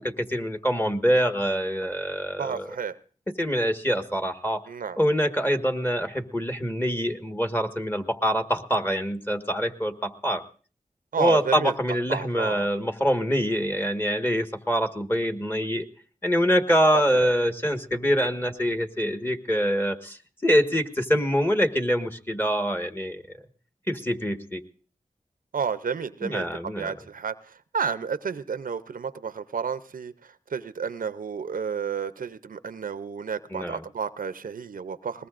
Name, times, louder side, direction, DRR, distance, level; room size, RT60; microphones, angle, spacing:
voice 1, 0.0-2.8 3.4-4.6 5.0-10.4 11.2-15.9 16.2-23.2 23.9-24.6 26.2-27.0 33.5-33.8, equal, 15° left, 7 dB, 1.5 m, -25 dB
voice 2, 2.4-3.0 4.7-5.0 11.1-11.8 12.1-12.7 16.9-17.3 25.5-27.3 27.7-30.1 30.5-35.3, right 6 dB, 80° right, 14 dB, 0.6 m, -31 dB
21.5 x 19.5 x 2.5 m, 0.41 s
cardioid pair, 40°, 14 cm